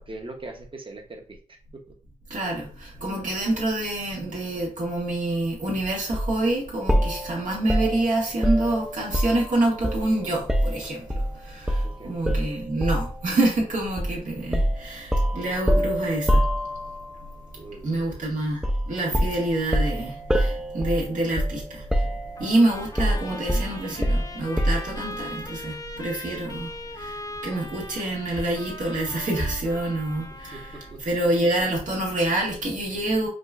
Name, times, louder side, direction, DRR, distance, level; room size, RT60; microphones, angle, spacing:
voice 1, 0.0-1.9 11.8-12.2 17.5-18.3 30.5-31.0, right 2 dB, 40° right, 0.9 m, -42 dB
voice 2, 2.3-11.0 11.4-16.4 17.8-18.6 18.9-21.8 22.4-26.7 27.0-27.2 27.4-30.7 31.0-33.3, right 2 dB, 85° right, 1.5 m, -26 dB
sound 1, 6.1-6.3 6.9-9.5 9.8-11.3 11.7-11.9 12.3-13.2 14.0-14.2 14.5-17.1 18.6-18.9 19.1-21.6 21.9-22.5 23.0-25.0, equal, 5° right, 0.4 m, -25 dB
Trumpet, 22.4-31.0, left 2 dB, 30° left, 0.7 m, -40 dB
4.9 x 2.3 x 2.4 m
cardioid pair, 60°, 13 cm